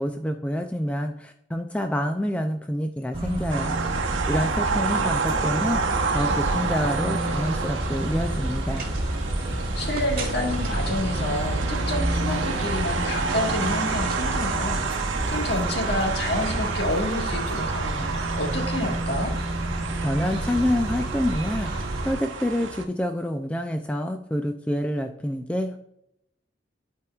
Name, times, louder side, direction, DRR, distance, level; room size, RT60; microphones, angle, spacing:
voice 1, 0.0-3.8 4.3-8.8 20.0-21.8 22.0-25.8, equal, 5° left, 5 dB, 0.3 m, -27 dB
sound 1, 3.1-22.1, right 1 dB, 30° right, 1.4 m, -30 dB
sound 2, 3.5-22.8, right 4 dB, 85° right, 0.8 m, -29 dB
sound 3, 5.2-17.9, right 2 dB, 50° right, 1.4 m, -42 dB
voice 2, 9.4-19.3, left 1 dB, 60° left, 1 dB, 1.6 m, -29 dB
11.5 x 4.5 x 2.4 m, 0.76 s
head